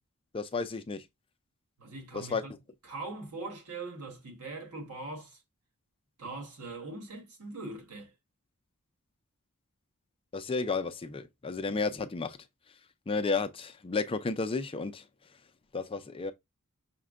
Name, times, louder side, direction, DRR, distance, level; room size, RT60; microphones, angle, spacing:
voice 1, 0.3-1.0 2.1-2.4 10.3-12.4 13.1-15.0 15.7-16.3, left 4 dB, 25° left, 0.4 m, -32 dB
voice 2, 1.8-5.4 6.2-8.1, right 3 dB, 80° right, 1.5 m, -41 dB
5.8 x 2.1 x 3.5 m
head